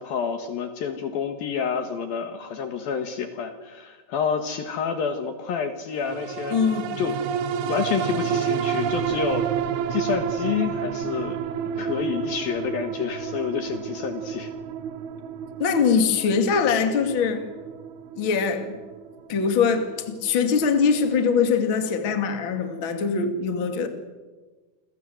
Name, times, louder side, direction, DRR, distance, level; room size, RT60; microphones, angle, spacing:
voice 1, 0.0-6.6 7.0-7.2 7.7-9.5 9.9-11.4 11.8-14.5, left 6 dB, 65° left, 3.1 m, -28 dB
sound 1, 6.0-20.7 21.1-21.2, right 7 dB, 70° right, 3.1 m, -30 dB
voice 2, 6.5-6.9 15.6-17.4 18.2-18.7 19.3-23.9, left 6 dB, 35° left, 2.6 m, -22 dB
29.0 x 22.5 x 7.9 m
omnidirectional pair, 5.0 m